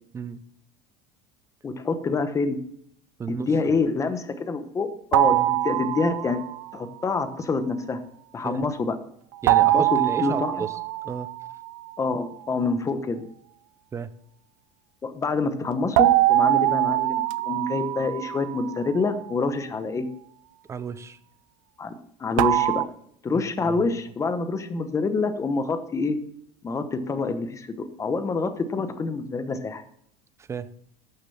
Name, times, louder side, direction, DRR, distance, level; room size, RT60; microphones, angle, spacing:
voice 1, 1.6-2.6 3.3-6.4 6.7-8.0 8.3-8.9 9.7-10.6 12.0-13.2 15.0-20.1 21.8-21.9 22.2-22.8 23.2-26.2 26.6-29.8, left 4 dB, 20° left, 10 dB, 1.1 m, -27 dB
voice 2, 3.2-3.8 5.2-5.5 8.4-8.6 9.4-10.8 11.0-11.3 13.9-14.1 20.7-21.2 23.3-23.8 30.4-30.7, right 6 dB, 15° right, 14 dB, 0.6 m, -33 dB
sound 1, 5.1-6.6 9.5-11.9 16.0-19.1 22.4-22.9, right 16 dB, 80° right, 0.6 m, -23 dB
11.5 x 6.9 x 7.0 m, 0.69 s
cardioid pair, 155°, 17 cm